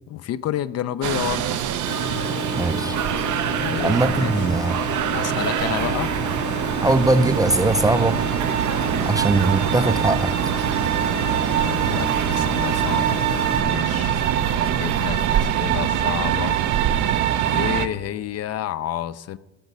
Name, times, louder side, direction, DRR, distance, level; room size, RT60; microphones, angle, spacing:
voice 1, 0.1-1.6 3.6-4.5 5.1-6.2 11.5-14.2 14.5-16.6 17.5-19.4, left 11 dB, 55° left, 0.4 m, -30 dB
sound 1, 1.0-17.9, right 10 dB, 80° right, 0.6 m, -23 dB
sound 2, 1.9-13.6, left 7 dB, 35° left, 0.9 m, -33 dB
voice 2, 2.5-3.0 3.8-4.8 6.8-8.2 8.9-10.3, right 2 dB, 10° right, 0.4 m, -21 dB
14.0 x 5.5 x 5.4 m
cardioid pair, 90°, 30 cm